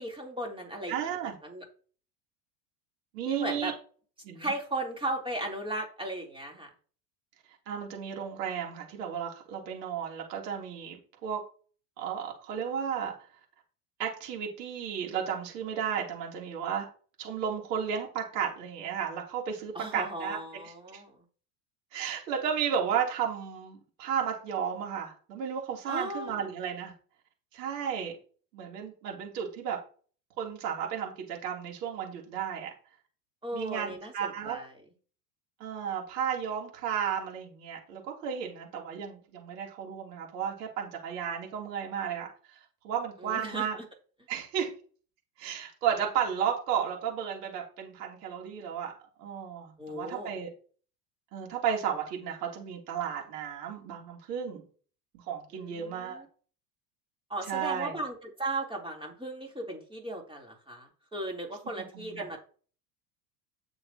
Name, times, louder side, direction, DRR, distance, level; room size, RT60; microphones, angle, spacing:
voice 1, 0.0-1.0 1.4-1.6 3.3-3.7 4.4-6.7 19.7-21.2 25.9-26.3 33.4-34.7 43.2-43.7 49.8-50.3 55.5-56.3 57.3-62.4, right 1 dB, 10° right, 1 dB, 3.6 m, -36 dB
voice 2, 0.9-1.3 3.1-3.7 4.2-4.5 7.7-11.4 12.0-13.1 14.0-16.9 17.2-20.4 20.6-21.0 21.9-26.9 27.5-28.2 28.5-29.8 30.4-32.7 33.5-34.6 35.6-43.8 44.3-44.7 45.4-48.9 49.2-50.5 51.3-54.6 55.1-56.2 57.5-58.0 61.9-62.2, right 8 dB, 75° right, 0 dB, 3.5 m, -33 dB
10.0 x 7.6 x 3.0 m, 0.40 s
hypercardioid pair, 85°, 49 cm